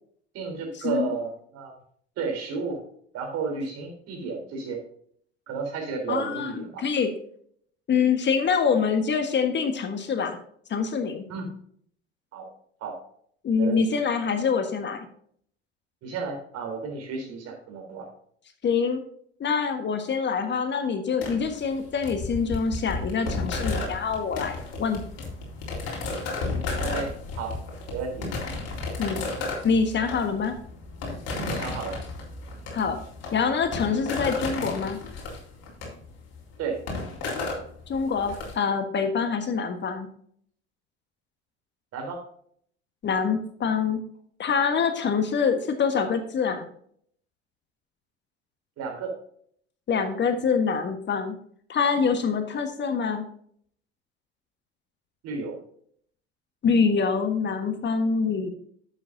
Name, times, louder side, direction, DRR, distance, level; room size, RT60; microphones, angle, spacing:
voice 1, 0.3-1.7 2.2-2.8 3.1-4.8 5.5-6.8 11.3-11.5 12.3-12.5 12.8-13.0 13.6-13.8 16.0-18.1 26.8-27.1 27.4-27.6 27.9-28.3 31.5-32.0 36.6-36.8 41.9-42.2 48.8-49.1 55.2-55.6, right 5 dB, 50° right, 2 dB, 3.7 m, -32 dB
voice 2, 6.1-7.1 7.9-10.4 10.7-11.2 13.4-15.1 18.6-19.0 19.4-25.0 29.0-29.2 29.6-30.5 32.7-33.0 33.3-35.0 37.9-40.1 43.0-44.0 44.4-46.7 49.9-51.3 51.7-53.2 56.6-58.5, left 5 dB, 35° left, 7 dB, 1.4 m, -25 dB
sound 1, 21.2-38.5, left 3 dB, 50° left, 3.7 m, -33 dB
11.5 x 8.4 x 2.7 m, 0.63 s
figure-of-eight pair, 65°, 32 cm